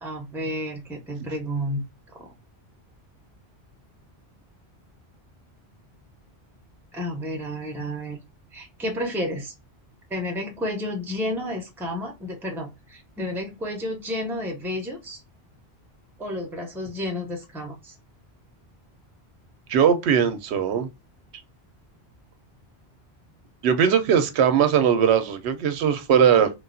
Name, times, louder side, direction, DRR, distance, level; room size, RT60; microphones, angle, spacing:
voice 1, 0.0-1.8 2.1-2.3 6.9-8.2 8.5-9.5 10.1-15.2 16.2-17.9, left 1 dB, ahead, 0.6 m, -31 dB
voice 2, 19.7-20.9 23.6-26.5, right 8 dB, 85° right, 0.9 m, -20 dB
3.2 x 2.3 x 2.4 m
omnidirectional pair, 1.1 m